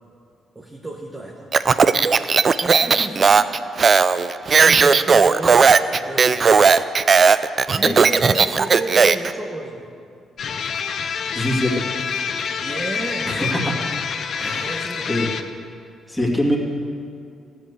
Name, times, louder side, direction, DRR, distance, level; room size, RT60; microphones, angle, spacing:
voice 1, 0.5-1.5 2.6-3.4 4.5-6.4 7.7-9.9 12.6-13.7 14.6-15.1, right 1 dB, 15° right, -1 dB, 1.3 m, -32 dB
Speech, 1.5-9.3, right 5 dB, 40° right, 0.4 m, -15 dB
sound 1, 10.4-15.4, left 6 dB, 60° left, 0.8 m, -27 dB
voice 2, 11.3-11.8 13.2-13.7 14.3-14.8 15.1-15.3 16.1-16.6, left 1 dB, 10° left, -3 dB, 2.5 m, -23 dB
14.5 x 7.8 x 8.2 m, 2.4 s
cardioid pair, 105°, 0 cm